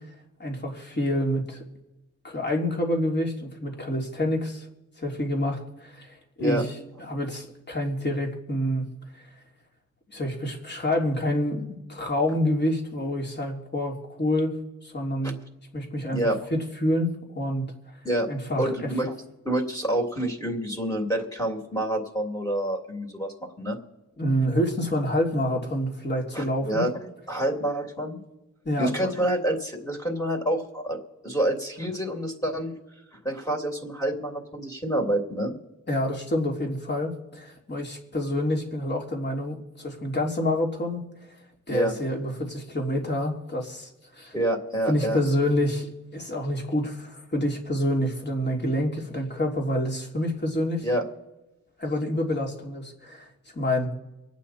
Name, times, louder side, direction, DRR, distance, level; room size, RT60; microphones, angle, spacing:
voice 1, 0.4-1.6 2.2-4.7 5.0-6.7 7.0-8.8 9.1-9.2 10.1-14.6 14.8-15.4 15.7-16.2 16.5-17.9 18.3-18.9 24.2-26.9 28.6-29.1 35.9-41.3 41.7-44.3 44.9-45.9 46.1-50.9 51.8-53.3 53.5-54.0, left 1 dB, 35° left, 0 dB, 3.2 m, -27 dB
voice 2, 18.6-19.1 19.4-23.8 26.3-26.9 27.3-28.2 28.8-32.7 33.1-35.6 41.7-41.9 44.3-45.2 50.8-51.0, right 1 dB, 10° left, 2 dB, 2.9 m, -27 dB
25.0 x 9.1 x 4.3 m, 1.0 s
cardioid pair, 65°, 30 cm